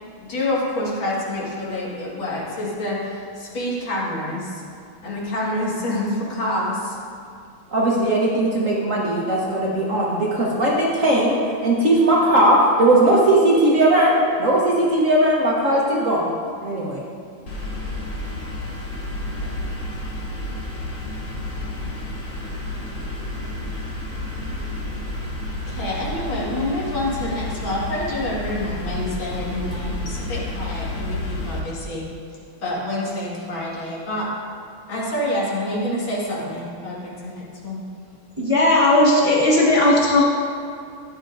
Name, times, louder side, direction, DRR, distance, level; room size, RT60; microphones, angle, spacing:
voice 1, 0.2-4.6 5.0-7.0 25.7-32.1 32.6-34.3 34.9-37.8, left 1 dB, 70° left, -5 dB, 2.7 m, -27 dB
voice 2, 7.7-16.3 16.6-17.0, right 1 dB, 50° right, -4 dB, 1.2 m, -18 dB
sound 1, 17.5-31.6, left 1 dB, 45° left, 1.4 m, -30 dB
voice 3, 38.4-40.3, left 1 dB, 20° right, -7 dB, 1.2 m, -16 dB
12.5 x 9.6 x 2.6 m, 2.4 s
omnidirectional pair, 2.2 m